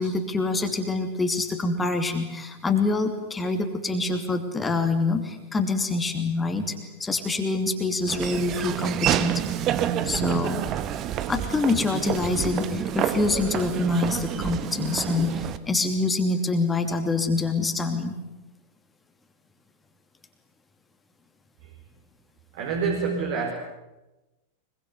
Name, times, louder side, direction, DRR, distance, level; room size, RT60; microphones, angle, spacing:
voice 1, 0.0-6.7 7.0-9.4 10.0-10.7 11.3-18.2, left 3 dB, 15° left, 5 dB, 2.7 m, -26 dB
Laughter / Walk footsteps, 8.1-15.6, right 10 dB, 35° right, 1.4 m, -28 dB
voice 2, 22.5-23.5, right 5 dB, 50° right, 0 dB, 4.5 m, -27 dB
24.0 x 22.5 x 8.2 m, 1.0 s
figure-of-eight pair, 90°, 0 cm